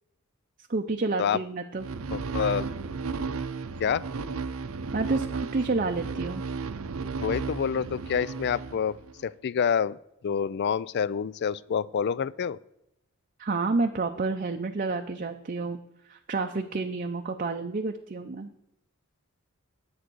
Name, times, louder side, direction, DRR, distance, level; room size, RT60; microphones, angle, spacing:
voice 1, 0.7-1.9 4.9-5.3 5.5-6.4 13.4-15.8 16.1-18.5, right 3 dB, 40° right, 4 dB, 0.6 m, -29 dB
sound 1, 1.8-9.2, right 4 dB, 75° right, 0.7 m, -34 dB
voice 2, 2.1-2.7 3.8-4.0 7.2-10.0 10.2-12.6, left 7 dB, 50° left, 21 dB, 0.3 m, -27 dB
10.5 x 7.9 x 6.2 m, 0.83 s
head